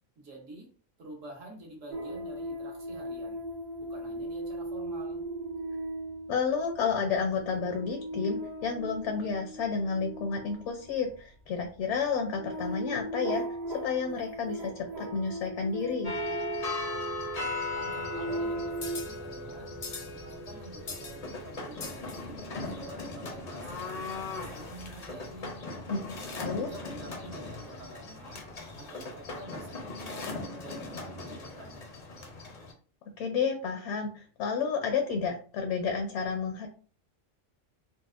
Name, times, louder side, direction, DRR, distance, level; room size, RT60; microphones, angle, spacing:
voice 1, 0.2-0.7 1.0-3.4 3.8-5.2 17.7-19.7 20.1-22.5 22.7-25.5 26.2-28.4 28.8-31.9, right 2 dB, 75° right, -1 dB, 1.4 m, -48 dB
sound 1, 1.9-17.0 17.7-19.0, right 1 dB, 45° right, 0.6 m, -38 dB
voice 2, 6.3-16.1 25.9-26.0 26.4-26.7 33.2-36.7, left 5 dB, 70° left, 4 dB, 0.8 m, -31 dB
sound 2, 16.0-32.7, left 2 dB, 50° left, 0.5 m, -38 dB
4.0 x 2.1 x 2.4 m, 0.41 s
omnidirectional pair, 1.3 m